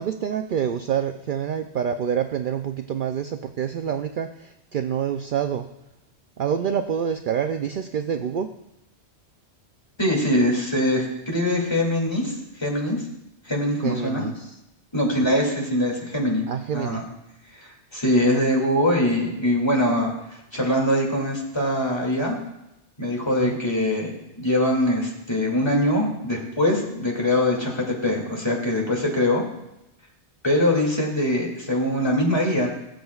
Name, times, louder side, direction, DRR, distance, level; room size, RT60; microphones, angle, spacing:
voice 1, 0.0-5.7 6.4-8.5 13.8-14.6 16.5-17.0 23.4-23.6, right 8 dB, 60° right, 7 dB, 0.6 m, -27 dB
voice 2, 10.0-13.0 13.4-14.3 14.9-16.5 16.7-17.0 17.6-20.1 20.5-22.4 23.0-24.1 24.4-29.4 30.4-32.7, left 1 dB, 25° left, -2 dB, 2.4 m, -23 dB
20.5 x 7.7 x 2.4 m, 0.89 s
omnidirectional pair, 1.2 m